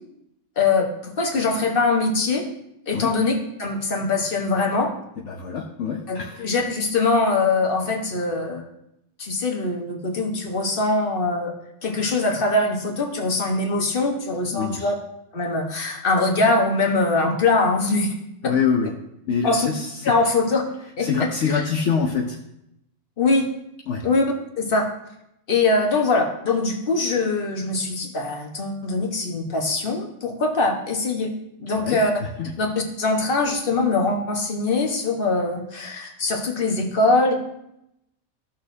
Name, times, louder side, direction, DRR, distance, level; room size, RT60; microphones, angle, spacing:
voice 1, 0.6-2.4 2.9-4.9 6.1-8.6 9.2-11.5 11.8-14.9 15.3-18.1 19.4-19.7 20.0-20.6 21.0-21.6 23.2-23.5 24.0-24.2 24.6-24.9 25.5-31.3 31.6-32.1 32.6-37.3, left 3 dB, 45° left, 2 dB, 1.4 m, -22 dB
voice 2, 5.3-6.5 14.5-14.9 18.4-18.9 19.3-19.9 21.0-22.4 23.9-24.1 31.7-32.5, left 6 dB, 70° left, 1 dB, 1.1 m, -25 dB
15.0 x 6.3 x 2.7 m, 0.82 s
omnidirectional pair, 1.3 m